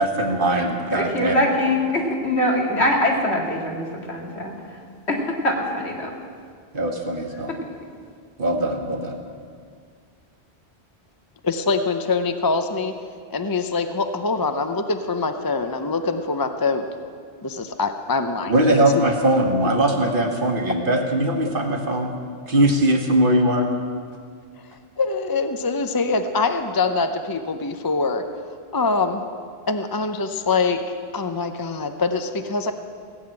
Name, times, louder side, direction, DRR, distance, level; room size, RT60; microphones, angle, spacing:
voice 1, 0.0-1.4 6.7-7.5 8.4-9.1 18.5-22.1 22.5-23.7, right 1 dB, 55° right, 3 dB, 1.6 m, -20 dB
voice 2, 0.9-4.5 5.1-6.2, left 1 dB, 85° left, -1 dB, 2.4 m, -23 dB
voice 3, 11.4-12.9 13.3-16.9 17.4-19.0 25.0-28.2 28.7-29.2 29.7-32.7, left 4 dB, 25° left, 7 dB, 0.6 m, -24 dB
16.5 x 7.7 x 8.8 m, 2.1 s
omnidirectional pair, 1.1 m